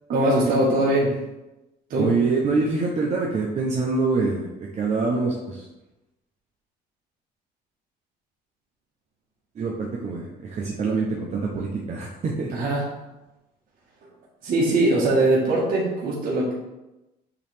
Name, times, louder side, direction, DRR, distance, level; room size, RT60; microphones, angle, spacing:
voice 1, 0.1-1.1 1.9-2.1 12.5-12.8 14.4-16.5, right 1 dB, 60° right, -5 dB, 1.5 m, -21 dB
voice 2, 2.0-5.7 9.5-12.5, right 3 dB, 40° right, -3 dB, 0.9 m, -25 dB
8.4 x 3.2 x 3.5 m, 1.0 s
cardioid pair, 110°, 17 cm